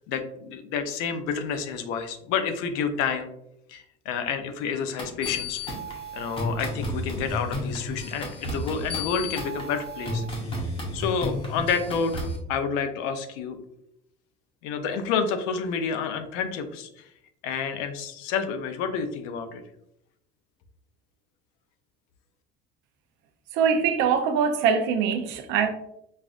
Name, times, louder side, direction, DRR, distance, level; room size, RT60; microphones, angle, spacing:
voice 1, 0.1-3.3 3.7-5.8 6.1-10.2 10.5-10.7 10.9-13.6 14.6-17.1 17.4-19.6, left 6 dB, 90° left, 0.6 m, -29 dB
sound 1, 5.0-12.4, left 1 dB, 25° left, 0.8 m, -32 dB
voice 2, 23.5-25.7, right 6 dB, 60° right, 0.5 m, -23 dB
5.4 x 2.4 x 2.4 m
cardioid pair, 180°, 21 cm